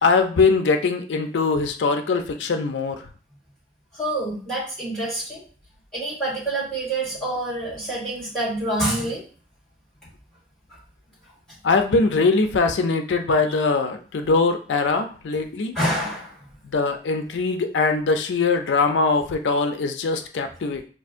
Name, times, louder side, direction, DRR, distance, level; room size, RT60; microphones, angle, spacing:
voice 1, 0.0-3.0 11.6-15.7 16.7-20.8, left 4 dB, 85° left, 6 dB, 0.4 m, -21 dB
voice 2, 4.0-5.4 5.9-9.2 15.7-16.3, right 1 dB, 5° left, -8 dB, 1.8 m, -26 dB
4.5 x 2.4 x 2.5 m, 0.40 s
head